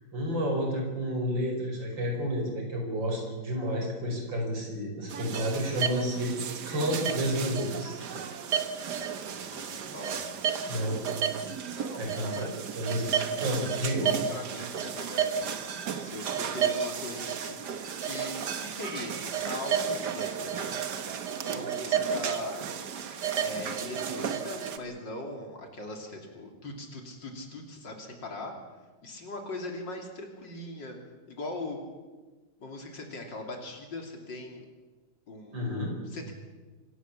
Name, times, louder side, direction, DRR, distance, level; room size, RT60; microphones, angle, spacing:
voice 1, 0.1-6.3 6.7-8.0 10.7-11.0 12.0-12.5 12.8-13.1 13.4-14.1 35.5-35.9, equal, 85° right, 2 dB, 5.8 m, -30 dB
sound 1, 5.1-24.8, right 7 dB, 65° right, 1.8 m, -32 dB
voice 2, 8.8-10.2 11.6-12.1 12.4-12.5 14.3-15.4 16.0-17.7 18.0-20.9 21.4-22.6 23.4-28.5 29.0-31.0 31.3-31.8 32.6-34.7 35.3-35.7 36.0-36.3, left 2 dB, 75° left, 3 dB, 3.7 m, -40 dB
26.0 x 17.0 x 7.2 m, 1.3 s
omnidirectional pair, 2.0 m